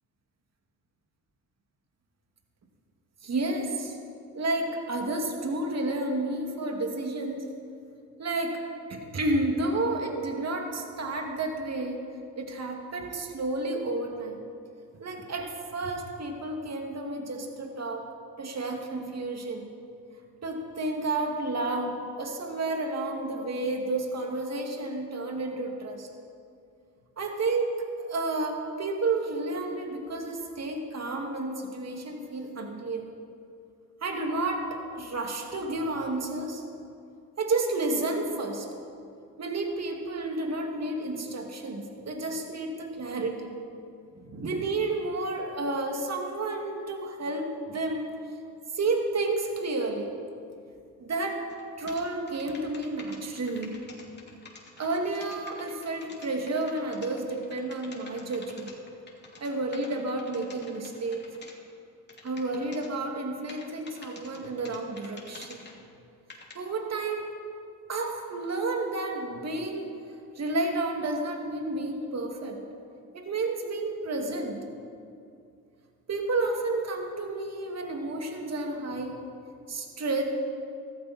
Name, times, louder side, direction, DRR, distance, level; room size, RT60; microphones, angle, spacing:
voice 1, 3.2-4.0 4.3-7.4 8.2-8.6 8.9-12.0 12.4-14.5 15.0-18.0 18.4-19.7 20.4-26.1 27.2-33.1 34.0-36.6 37.4-38.7 39.4-43.6 44.1-48.1 48.7-50.2 51.0-51.4 51.8-53.7 54.8-58.7 59.4-61.2 62.2-65.6 66.5-67.3 67.9-69.9 70.4-72.6 73.1-74.6 76.1-79.2 79.7-80.2, right 2 dB, 45° right, 2 dB, 2.3 m, -31 dB
sound 1, 51.5-51.6 51.9-61.5 62.1-62.9 63.5-65.8 66.3-66.5, left 3 dB, 30° left, 2.7 m, -48 dB
14.5 x 14.0 x 4.3 m, 2.5 s
supercardioid pair, 65°, 37 cm